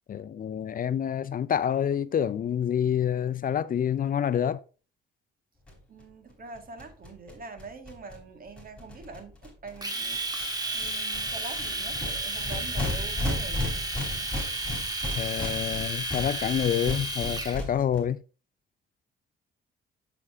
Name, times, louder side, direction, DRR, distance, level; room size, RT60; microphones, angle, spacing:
voice 1, 0.1-4.6 15.1-18.2, left 9 dB, 45° left, 0.5 m, -27 dB
sound 1, 5.7-5.8 6.0-6.1 6.3-6.4 6.6-9.8 10.1-10.5 10.8-18.0, left 1 dB, 5° left, 3.9 m, -35 dB
voice 2, 5.9-10.2 10.7-13.7, right 3 dB, 45° right, 1.7 m, -44 dB
Domestic sounds home sounds, 9.8-17.6, right 2 dB, 20° right, 1.6 m, -32 dB
6.9 x 6.2 x 3.5 m
cardioid pair, 90°, 20 cm